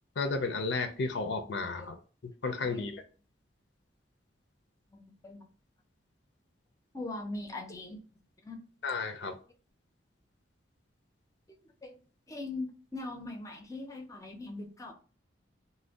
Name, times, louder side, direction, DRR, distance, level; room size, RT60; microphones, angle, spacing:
voice 1, 0.2-2.0 2.4-3.0 8.8-9.4, left 3 dB, 70° left, 0.5 m, -33 dB
voice 2, 2.4-2.9 4.9-5.5 6.9-8.0 8.4-8.6 11.5-11.6 11.8-12.0 12.3-14.9, left 2 dB, 20° left, 0.5 m, -41 dB
2.5 x 2.2 x 3.4 m
head